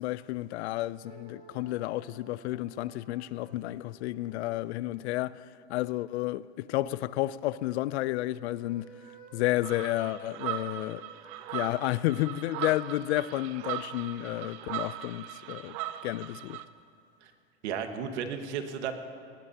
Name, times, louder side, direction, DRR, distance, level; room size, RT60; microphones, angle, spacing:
voice 1, 0.0-5.4 5.7-8.9 9.3-11.0 11.5-15.8 16.0-16.6, left 16 dB, 70° left, 0.5 m, -31 dB
sound 1, 1.0-5.9 7.9-12.2, right 4 dB, 25° right, 3.4 m, -54 dB
sound 2, 9.6-16.7, right 13 dB, 45° right, 0.7 m, -39 dB
voice 2, 17.6-18.9, right 7 dB, 75° right, 1.7 m, -34 dB
20.0 x 18.5 x 2.9 m
supercardioid pair, 130°, 34 cm